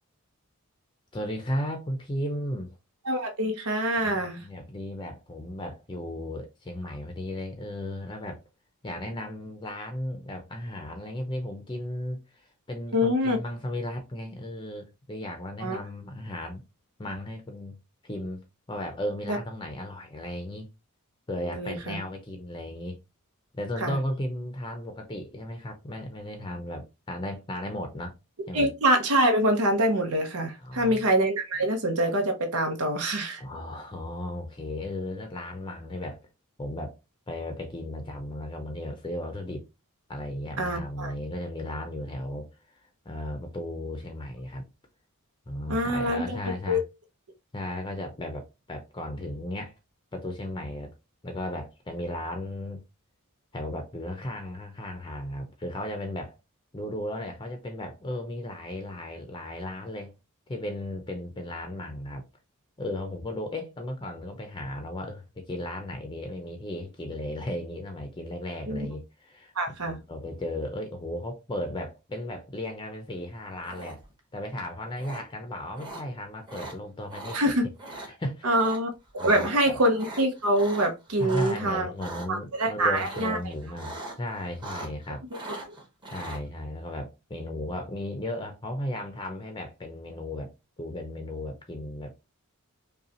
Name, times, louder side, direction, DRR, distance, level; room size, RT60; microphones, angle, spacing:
voice 1, 1.1-2.8 4.0-8.4 8.8-16.6 17.0-17.8 18.0-20.7 21.3-23.0 23.5-28.1 28.5-28.7 30.6-31.0 33.4-36.2 36.6-36.9 37.3-39.6 40.1-42.8 43.1-44.6 45.5-46.8 47.5-49.7 50.1-50.9 51.2-52.8 53.5-56.4 56.7-60.1 60.5-62.2 62.8-69.5 69.8-74.0 74.3-77.4 78.1-78.6 79.2-79.8 81.2-85.2 86.1-90.5 90.8-92.1, left 1 dB, 20° left, 0.6 m, -35 dB
voice 2, 3.0-4.4 12.9-13.4 15.6-15.8 19.3-19.4 21.5-22.0 23.8-24.0 28.5-33.4 40.6-41.1 45.7-46.4 46.7-46.8 68.7-68.9 69.6-70.0 77.3-77.7 78.4-78.9 79.2-81.9 82.3-83.4 85.3-85.4, right 1 dB, 80° right, 0.9 m, -25 dB
sound 1, 73.6-74.2 75.0-75.2 75.8-76.0 76.5-76.7 77.1-77.4 77.8-78.1 78.5-78.8 79.1-79.5 79.9-81.6 82.0-82.3 82.9-83.4 83.7-84.2 84.4-85.1 85.3-86.4, right 2 dB, 20° right, 1.1 m, -40 dB
5.3 x 2.3 x 2.9 m
head